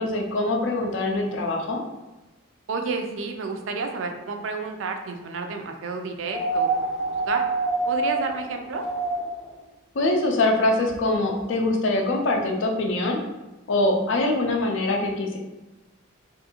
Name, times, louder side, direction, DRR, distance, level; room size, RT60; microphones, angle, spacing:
voice 1, 0.0-1.8 10.0-13.2 13.7-15.4, left 2 dB, 60° left, 2 dB, 0.4 m, -23 dB
voice 2, 2.7-7.4 7.9-8.8, right 4 dB, 65° right, 4 dB, 0.4 m, -31 dB
sound 1, 6.3-9.5 10.9-11.0, right 3 dB, ahead, 0.5 m, -26 dB
2.6 x 2.5 x 2.8 m, 1.1 s
head